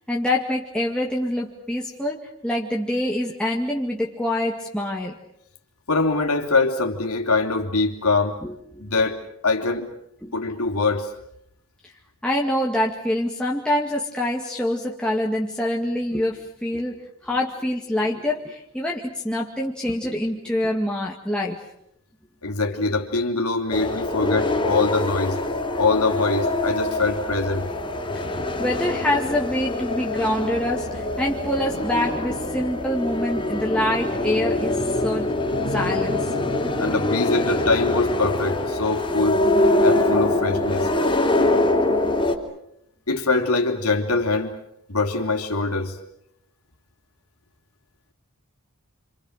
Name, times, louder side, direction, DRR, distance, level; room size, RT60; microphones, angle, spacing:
voice 1, 0.0-5.2 8.4-8.9 10.2-10.3 12.2-21.6 26.9-27.0 28.3-35.3 35.7-36.3, left 1 dB, 5° left, -3 dB, 2.2 m, -26 dB
voice 2, 5.9-8.4 8.8-9.9 10.3-11.1 22.4-25.4 25.8-27.7 36.8-39.4 39.8-40.9 43.1-44.6 44.9-46.0, left 3 dB, 80° left, 2 dB, 3.3 m, -23 dB
sound 1, 23.7-42.4, left 2 dB, 25° left, 3.5 m, -24 dB
28.5 x 27.0 x 6.7 m, 0.77 s
head